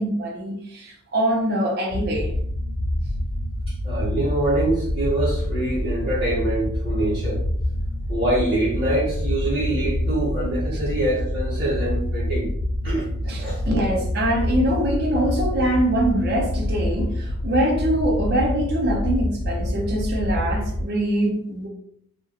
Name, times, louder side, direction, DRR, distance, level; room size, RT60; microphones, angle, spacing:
voice 1, 0.0-2.3 13.3-21.7, right 1 dB, 50° right, 0.5 m, -23 dB
sound 1, 1.9-20.8, left 1 dB, 60° left, 0.3 m, -26 dB
voice 2, 3.7-7.4 8.1-12.5 12.8-13.1 13.4-13.6, right 1 dB, 25° right, 0.8 m, -25 dB
2.3 x 2.2 x 2.7 m
head